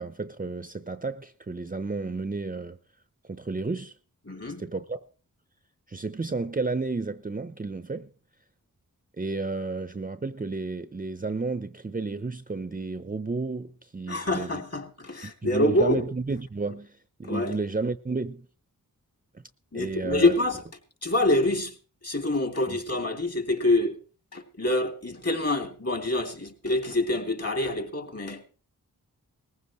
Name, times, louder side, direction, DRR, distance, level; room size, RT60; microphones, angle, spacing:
voice 1, 0.0-2.8 3.3-4.0 4.6-5.0 5.9-8.1 9.2-14.6 15.2-18.5 19.7-20.3 22.7-22.8, right 3 dB, 25° right, 0.7 m, -32 dB
voice 2, 4.3-4.7 14.1-16.0 17.2-17.6 19.7-20.6 21.0-21.8 22.0-24.0 24.3-28.5, left 2 dB, 45° left, 3.2 m, -26 dB
19.5 x 15.5 x 3.1 m
cardioid pair, 50°, 36 cm